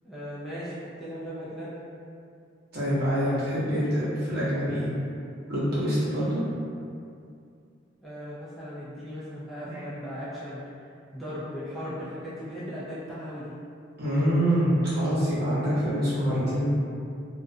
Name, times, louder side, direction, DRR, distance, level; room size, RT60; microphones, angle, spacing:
voice 1, 0.0-1.8 8.0-10.6 11.1-13.5, equal, ahead, -11 dB, 0.3 m, -37 dB
voice 2, 2.7-4.9 5.5-6.4 9.7-9.8 14.0-16.6, equal, 55° right, -10 dB, 0.9 m, -25 dB
2.4 x 2.1 x 2.5 m, 2.4 s
head